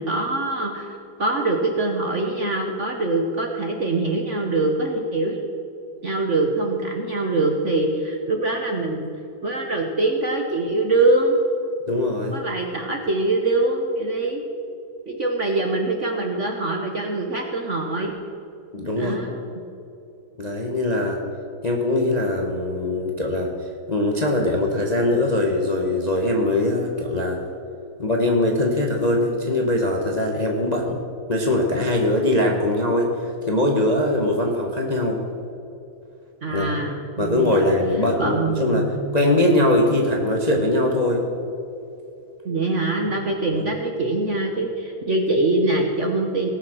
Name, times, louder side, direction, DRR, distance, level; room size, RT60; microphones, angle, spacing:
voice 1, 0.0-5.4 6.0-9.1 9.4-11.4 12.3-14.4 15.1-18.1 18.9-19.4 36.4-37.7 38.2-39.6 42.4-46.5, right 2 dB, 45° right, 2 dB, 1.0 m, -24 dB
voice 2, 11.9-12.4 18.7-19.2 20.4-21.2 21.6-23.5 23.9-27.4 28.0-31.0 31.3-35.2 36.5-36.9 37.2-38.9 39.1-41.3 43.5-43.7, left 1 dB, 30° left, 1 dB, 0.8 m, -21 dB
18.5 x 6.6 x 6.2 m, 2.8 s
omnidirectional pair, 2.3 m